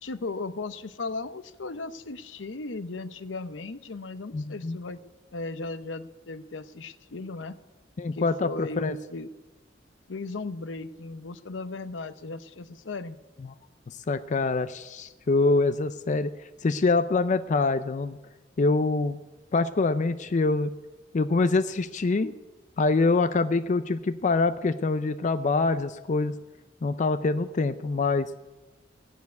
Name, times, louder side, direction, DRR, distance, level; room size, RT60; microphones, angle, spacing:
voice 1, 0.0-5.0 5.3-7.6 8.1-9.3 10.1-13.2, left 3 dB, 80° left, 12 dB, 0.8 m, -36 dB
voice 2, 4.3-4.8 8.0-9.0 14.1-16.3 16.6-18.2 18.6-19.2 19.5-20.7 21.1-22.3 22.8-26.4 26.8-28.3, left 3 dB, 40° left, 11 dB, 0.4 m, -25 dB
16.0 x 7.0 x 9.4 m, 1.1 s
head